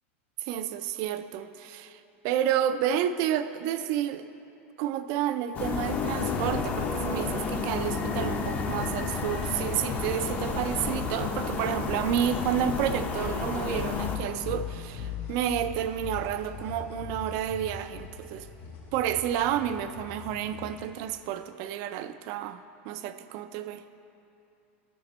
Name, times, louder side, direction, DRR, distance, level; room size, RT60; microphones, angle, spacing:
voice 1, 0.4-4.2 4.8-18.5 18.9-23.8, right 10 dB, 50° right, 11 dB, 0.4 m, -30 dB
sound 1, 5.5-14.2, left 4 dB, 25° left, 0.6 m, -31 dB
sound 2, 13.9-21.4, left 7 dB, 50° left, 1.4 m, -40 dB
12.5 x 5.2 x 4.2 m, 3.0 s
supercardioid pair, 145°, 7 cm